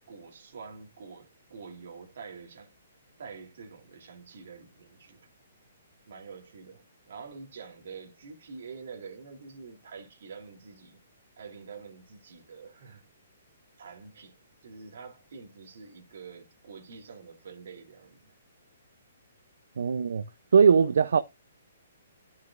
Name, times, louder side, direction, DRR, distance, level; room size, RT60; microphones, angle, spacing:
voice 1, 0.1-2.7 3.2-5.3 6.1-11.0 11.4-13.0 13.8-14.3 14.6-18.3, right 5 dB, 50° right, 2.9 m, -46 dB
voice 2, 19.8-20.2 20.5-21.2, right 6 dB, 70° right, 0.6 m, -20 dB
13.0 x 6.3 x 2.5 m
hypercardioid pair, 180°, 0 cm